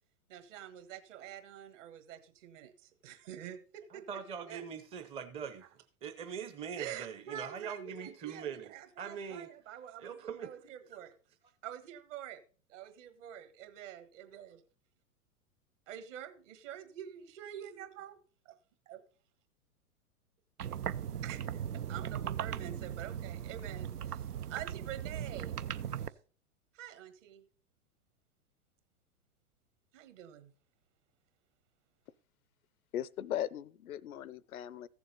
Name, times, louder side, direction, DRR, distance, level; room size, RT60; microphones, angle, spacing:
voice 1, 0.3-4.0 4.4-4.6 6.8-10.1 10.4-11.2 11.6-12.4 12.7-14.6 15.9-18.2 18.4-18.6 18.9-19.0 21.2-21.6 21.9-24.2 24.5-25.6 26.7-27.4 29.9-30.5, right 10 dB, 55° right, 1.6 m, -46 dB
voice 2, 3.9-5.7 6.0-9.5 10.0-10.5, right 7 dB, 15° right, 0.6 m, -42 dB
sound 1, 20.6-26.1, right 9 dB, 85° right, 0.6 m, -38 dB
voice 3, 32.9-34.9, left 11 dB, 70° left, 0.6 m, -38 dB
14.5 x 7.0 x 4.0 m
figure-of-eight pair, 105°, 45 cm